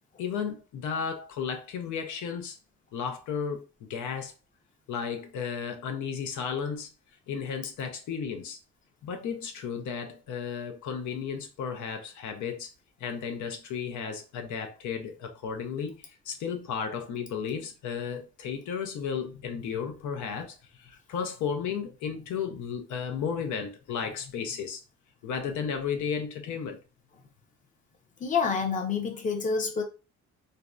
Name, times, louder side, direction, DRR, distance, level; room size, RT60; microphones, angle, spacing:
voice 1, 0.2-2.6 2.9-3.6 3.9-4.3 4.9-6.9 7.3-8.6 9.0-12.7 13.0-24.8 25.2-26.8, left 6 dB, 85° left, 0.6 m, -34 dB
voice 2, 28.2-29.8, left 5 dB, 25° left, 0.6 m, -28 dB
2.6 x 2.1 x 2.3 m
cardioid pair, 120°, 29 cm